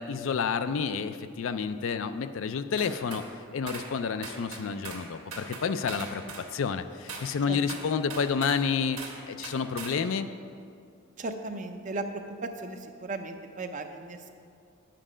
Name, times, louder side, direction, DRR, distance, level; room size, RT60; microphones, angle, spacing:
voice 1, 0.0-3.2 3.5-9.0 9.2-10.3, left 6 dB, 60° left, 11 dB, 0.4 m, -30 dB
sound 1, 2.8-3.3 3.7-3.9 4.2-5.1 5.3-6.5 7.1-7.3 7.7-8.6 9.0-9.2 9.4-10.0, right 4 dB, 75° right, 1.7 m, -40 dB
voice 2, 7.5-7.9 11.2-14.3, right 2 dB, 35° right, 6 dB, 0.6 m, -37 dB
9.8 x 7.6 x 5.0 m, 2.3 s
head